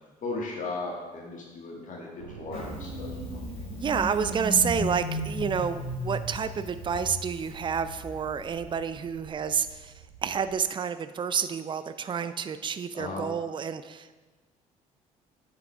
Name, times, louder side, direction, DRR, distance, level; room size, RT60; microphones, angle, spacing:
voice 1, 0.2-3.1 12.9-13.2, left 3 dB, 45° left, -1 dB, 1.8 m, -36 dB
sound 1, 2.2-10.6, right 8 dB, 80° right, 0.5 m, -48 dB
Engine starting, 2.5-9.0, left 1 dB, 70° left, 2.6 m, -35 dB
voice 2, 3.8-9.9 10.2-14.1, right 7 dB, 25° right, 12 dB, 0.5 m, -29 dB
9.3 x 6.0 x 3.5 m, 1.3 s
figure-of-eight pair, 50°, 19 cm